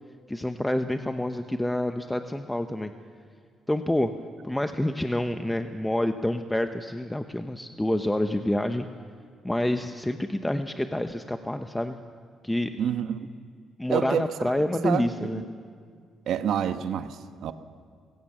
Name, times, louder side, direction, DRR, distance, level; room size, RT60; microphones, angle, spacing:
voice 1, 0.3-2.9 3.7-4.1 4.4-8.9 9.4-12.0 12.4-12.7 13.8-15.4, left 1 dB, 10° left, 7 dB, 0.9 m, -27 dB
voice 2, 12.8-13.3 13.9-14.3 14.8-15.4 16.3-17.5, right 9 dB, 75° right, 9 dB, 1.1 m, -28 dB
28.0 x 16.5 x 7.4 m, 2.1 s
cardioid pair, 90°, 0 cm